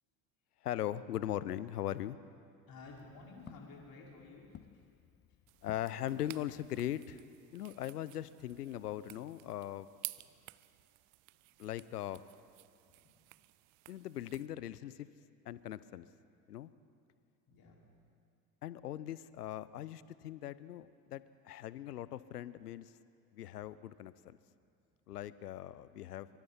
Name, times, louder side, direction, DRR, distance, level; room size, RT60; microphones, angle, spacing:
voice 1, 0.6-2.2 5.6-7.2 7.5-9.9 11.6-12.2 13.9-15.1 15.5-16.1 16.5-16.7 18.6-22.9 23.3-24.4 25.1-26.3, left 12 dB, 85° left, 17 dB, 0.7 m, -40 dB
Walk footsteps, 2.6-7.2, left 11 dB, 25° left, 0.4 m, -59 dB
voice 2, 2.7-4.9 10.2-10.3 11.3-11.5 13.0-13.2 17.5-17.8, left 3 dB, 50° left, -3 dB, 5.6 m, -54 dB
sound 1, 5.5-14.5, right 24 dB, 60° right, 0.6 m, -53 dB
25.0 x 24.0 x 4.4 m, 2.4 s
figure-of-eight pair, 60°, 46 cm